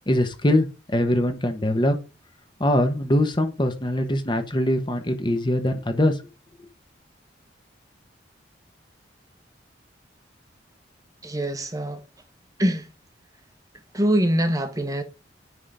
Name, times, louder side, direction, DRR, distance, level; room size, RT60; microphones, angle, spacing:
voice 1, 0.1-2.0 2.6-6.1, left 1 dB, 25° left, 1.2 m, -22 dB
voice 2, 11.2-12.0 12.6-12.9 13.9-15.0, right 1 dB, 20° right, 1.1 m, -23 dB
9.8 x 3.8 x 5.0 m
head